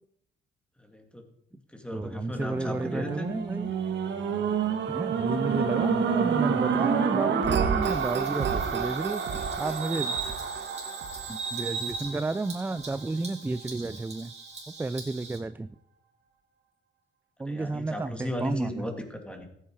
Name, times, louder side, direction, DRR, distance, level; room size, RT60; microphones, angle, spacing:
voice 1, 0.8-1.2 1.7-3.3 17.5-19.5, left 1 dB, 5° left, 4 dB, 2.5 m, -36 dB
voice 2, 1.9-3.7 4.9-10.1 11.3-14.3 14.8-15.8 17.4-18.8, right 3 dB, 10° right, 15 dB, 0.3 m, -32 dB
End of Time, 2.4-12.7 13.3-13.4, right 6 dB, 65° right, 1.6 m, -29 dB
Bird vocalization bird call bird song, 7.8-15.4, right 4 dB, 35° right, 4.2 m, -39 dB
14.5 x 9.0 x 4.8 m, 0.74 s
cardioid pair, 90°, 20 cm